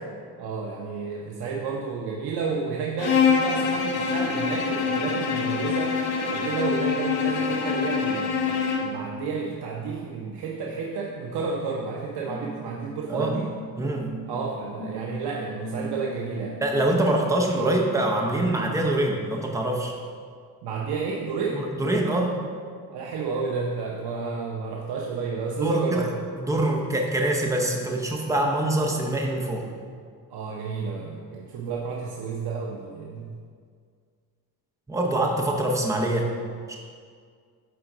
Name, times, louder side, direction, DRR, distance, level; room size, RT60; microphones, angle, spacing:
voice 1, 0.4-8.5 8.8-13.5 14.3-16.6 20.6-21.7 22.9-26.2 30.3-33.4, right 5 dB, 90° right, -1 dB, 0.8 m, -31 dB
Bowed string instrument, 3.0-9.0, left 6 dB, 75° left, 1.1 m, -25 dB
sound 1, 12.3-17.1, equal, 30° left, 1.8 m, -39 dB
voice 2, 13.8-14.1 16.6-19.9 21.5-22.4 25.6-26.1 26.4-29.7 34.9-36.3 36.7-36.8, right 1 dB, 10° right, 0 dB, 0.7 m, -24 dB
9.3 x 3.8 x 6.0 m, 2.1 s
cardioid pair, 175°, 38 cm